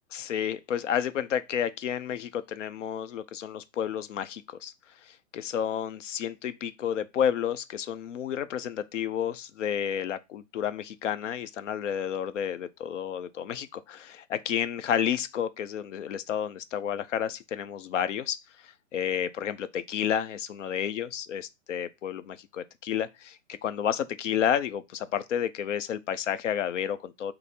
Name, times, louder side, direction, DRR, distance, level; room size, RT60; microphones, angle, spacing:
voice 1, 0.1-4.7 5.3-18.4 18.9-27.3, left 9 dB, 65° left, 0.6 m, -31 dB
5.0 x 2.0 x 4.3 m
hypercardioid pair, 145°, 39 cm